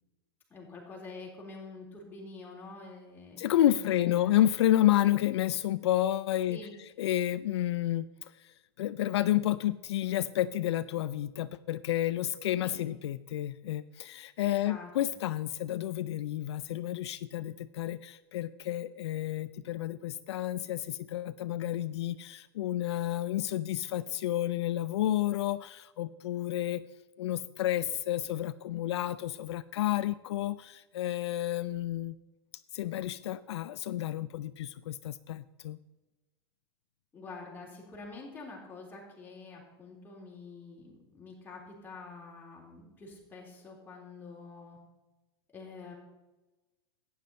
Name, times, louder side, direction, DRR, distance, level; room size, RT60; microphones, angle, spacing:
voice 1, 0.5-4.5 6.5-6.7 12.6-12.8 14.4-14.9 15.3-15.4 37.1-44.8 45.5-45.9, left 3 dB, 15° left, -3 dB, 3.9 m, -47 dB
voice 2, 3.4-6.6 7.0-8.1 8.3-26.9 27.2-32.1 32.7-35.8, left 13 dB, 75° left, 14 dB, 0.4 m, -30 dB
11.5 x 9.5 x 4.3 m, 1.1 s
hypercardioid pair, 125°, 14 cm